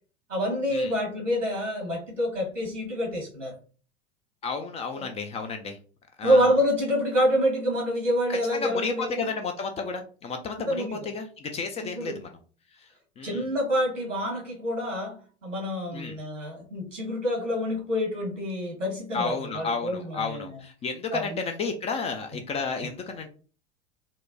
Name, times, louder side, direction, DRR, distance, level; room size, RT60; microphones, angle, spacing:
voice 1, 0.3-3.6 4.9-5.1 6.2-9.3 10.7-11.0 11.8-12.2 13.2-20.6 21.1-21.4, equal, 90° right, 1.5 m, -27 dB
voice 2, 4.4-5.8 6.2-6.6 8.3-12.3 12.7-12.9 13.2-13.5 15.9-16.2 19.1-23.3, left 4 dB, 20° left, 0.3 m, -32 dB
4.3 x 2.2 x 2.6 m
figure-of-eight pair, 80°, 37 cm